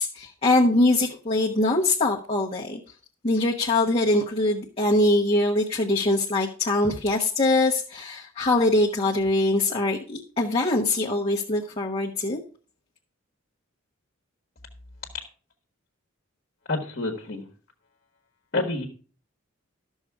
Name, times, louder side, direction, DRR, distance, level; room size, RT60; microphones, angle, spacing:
voice 1, 0.0-2.8 3.2-12.4, left 2 dB, 30° left, -3 dB, 1.1 m, -23 dB
voice 2, 16.7-17.5 18.5-18.9, left 2 dB, 50° left, 2 dB, 1.5 m, -28 dB
12.5 x 6.5 x 4.8 m, 0.39 s
head